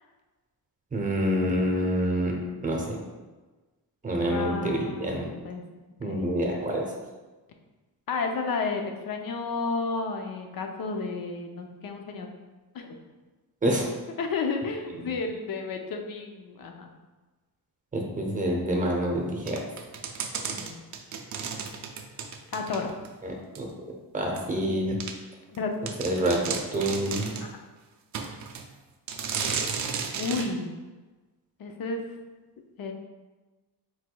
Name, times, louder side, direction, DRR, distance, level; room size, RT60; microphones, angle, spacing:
voice 1, 0.9-2.4 2.6-3.0 4.0-5.3 6.0-6.8 13.6-13.9 15.0-15.2 17.9-19.6 23.2-23.7 24.1-25.0 26.0-27.4, equal, 20° right, 0 dB, 0.7 m, -27 dB
voice 2, 4.3-5.6 6.0-6.2 8.1-12.3 12.7-13.0 14.2-16.9 20.4-20.9 22.5-22.9 25.5-25.7 26.0-26.1 30.2-30.7 31.6-32.0 32.8-32.9, left 4 dB, 60° left, 3 dB, 0.6 m, -32 dB
sound 1, 19.5-23.1 23.5-23.6 24.4-24.5 25.0-25.1 25.5-25.6 25.9-27.5 28.1-28.7 29.1-30.5, right 6 dB, 45° right, 0.5 m, -33 dB
4.7 x 4.1 x 2.3 m, 1.2 s
wide cardioid pair, 145°, 40 cm